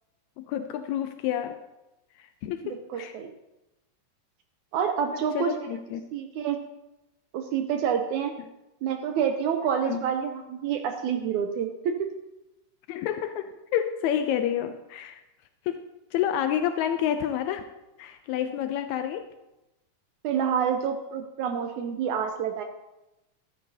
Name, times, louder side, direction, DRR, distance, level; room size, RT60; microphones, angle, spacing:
voice 1, 0.4-1.6 2.2-3.2 5.3-6.0 9.8-10.1 12.9-15.2 15.6-15.8 16.1-17.7 18.0-19.3, left 10 dB, 85° left, 8 dB, 1.6 m, -29 dB
voice 2, 2.6-3.3 4.7-5.5 6.1-6.6 7.3-8.3 8.8-12.1 20.2-22.6, right 8 dB, 75° right, 5 dB, 1.9 m, -28 dB
14.0 x 13.5 x 2.7 m, 0.97 s
omnidirectional pair, 3.9 m